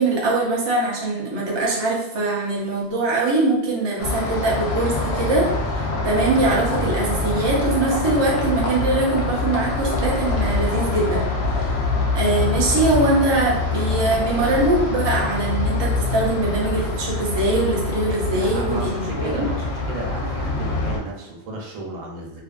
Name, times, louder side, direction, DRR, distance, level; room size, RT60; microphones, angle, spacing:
voice 1, 0.0-5.5 6.0-11.3 11.5-11.6 12.1-18.9 19.2-19.5, right 2 dB, 45° right, -4 dB, 0.3 m, -22 dB
sound 1, 4.0-21.0, left 3 dB, 65° left, 0.7 m, -24 dB
voice 2, 18.3-22.4, right 2 dB, 80° right, -1 dB, 1.0 m, -33 dB
2.5 x 2.3 x 2.4 m, 0.87 s
omnidirectional pair, 1.3 m